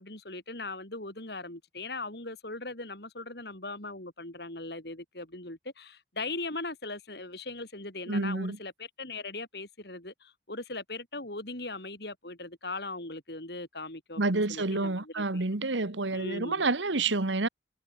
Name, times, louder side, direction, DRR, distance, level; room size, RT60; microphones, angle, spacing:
voice 1, 0.0-15.4 16.1-16.7, left 2 dB, 60° left, 4.6 m, -39 dB
voice 2, 8.1-8.6 14.2-17.5, right 3 dB, 85° right, 1.6 m, -28 dB
head